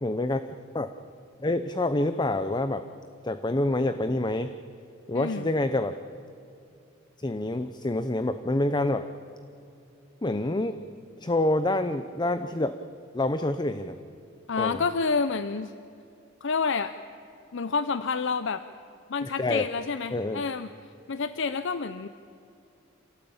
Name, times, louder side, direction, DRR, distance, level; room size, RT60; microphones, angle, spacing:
voice 1, 0.0-0.4 0.7-0.9 1.4-2.8 3.2-4.5 5.1-5.9 7.2-9.1 10.2-10.8 11.2-12.8 13.1-14.0 14.6-14.8 19.2-19.7 20.1-20.4, left 2 dB, 20° left, 10 dB, 0.7 m, -27 dB
voice 2, 5.1-5.5 14.5-15.7 16.4-16.9 17.5-18.6 19.1-20.7 21.1-22.1, left 4 dB, 65° left, 12 dB, 0.7 m, -28 dB
27.5 x 18.0 x 8.9 m, 2.5 s
head